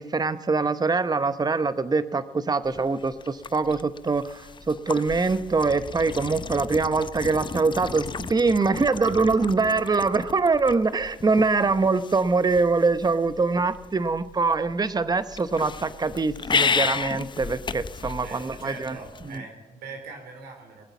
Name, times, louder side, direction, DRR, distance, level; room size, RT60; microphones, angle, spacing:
voice 1, 0.0-19.0, right 4 dB, 25° right, 14 dB, 0.8 m, -24 dB
sound 1, 2.6-19.4, left 5 dB, 30° left, 0.5 m, -34 dB
voice 2, 18.2-20.8, right 4 dB, 75° right, 3 dB, 3.7 m, -41 dB
20.5 x 7.8 x 7.3 m, 1.2 s
supercardioid pair, 55°, 17 cm